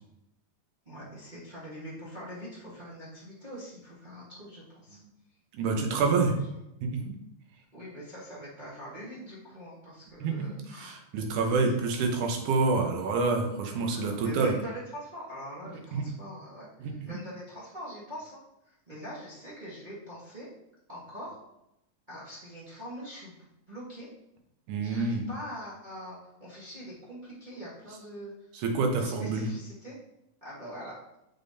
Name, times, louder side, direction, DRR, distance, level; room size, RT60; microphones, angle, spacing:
voice 1, 0.8-5.0 6.4-6.6 7.7-11.0 11.6-11.7 13.7-18.4 18.7-20.5 20.9-21.4 22.1-23.4 23.7-24.1 24.8-28.3 28.9-29.9 30.4-31.0, equal, 60° right, -9 dB, 0.4 m, -43 dB
voice 2, 5.5-6.3 6.8-7.2 10.2-14.5 15.9-16.1 16.8-17.2 24.7-25.2 28.5-29.4, right 4 dB, 80° right, 3 dB, 2.4 m, -28 dB
7.0 x 5.6 x 2.7 m, 0.86 s
omnidirectional pair, 3.6 m